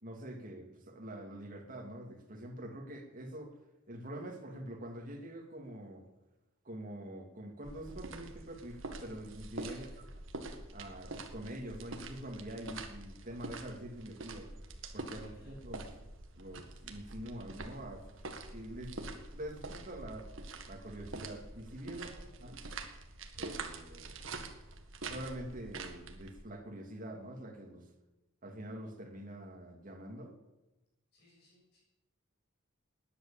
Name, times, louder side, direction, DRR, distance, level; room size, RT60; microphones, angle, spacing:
voice 1, 0.0-3.6 3.9-6.1 6.6-10.1 10.7-14.5 14.9-15.9 16.3-18.1 18.5-20.3 20.7-22.1 22.4-22.6 23.3-24.2 25.0-27.9 28.4-30.4, right 1 dB, 40° right, 3 dB, 2.6 m, -45 dB
sound 1, 7.6-26.4, right 3 dB, 65° right, 1.9 m, -46 dB
voice 2, 9.6-10.0 15.1-15.6 21.9-22.2 31.1-31.8, left 1 dB, 50° left, -4 dB, 7.0 m, -63 dB
19.0 x 10.0 x 7.2 m, 0.98 s
head